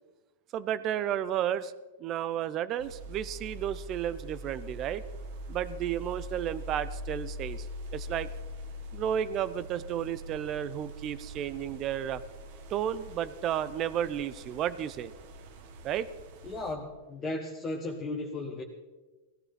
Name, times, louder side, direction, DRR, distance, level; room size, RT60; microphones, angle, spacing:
voice 1, 0.5-1.7 2.0-5.0 5.5-7.7 7.9-8.3 8.9-12.2 12.7-15.1 15.8-16.1, right 10 dB, 30° right, 16 dB, 0.6 m, -32 dB
sound 1, 2.8-16.7, equal, 60° right, 1.7 m, -43 dB
voice 2, 16.4-18.6, left 2 dB, 20° left, 0 dB, 1.4 m, -35 dB
16.5 x 15.5 x 4.3 m, 1.2 s
supercardioid pair, 145°, 0 cm